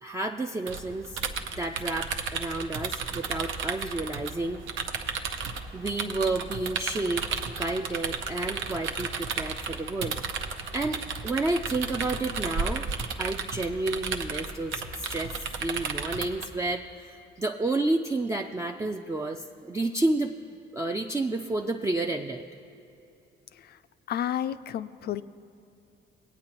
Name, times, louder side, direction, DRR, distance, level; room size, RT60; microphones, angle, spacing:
voice 1, 0.0-1.2 1.6-4.6 5.7-10.2 10.7-12.9 13.2-20.4 20.7-22.4, right 2 dB, 15° right, 2 dB, 0.4 m, -30 dB
sound 1, 0.7-16.5, right 5 dB, 75° right, 0.7 m, -34 dB
voice 2, 24.1-25.2, left 10 dB, 55° left, 13 dB, 0.4 m, -31 dB
18.0 x 8.8 x 2.9 m, 2.8 s
cardioid pair, 90°, 20 cm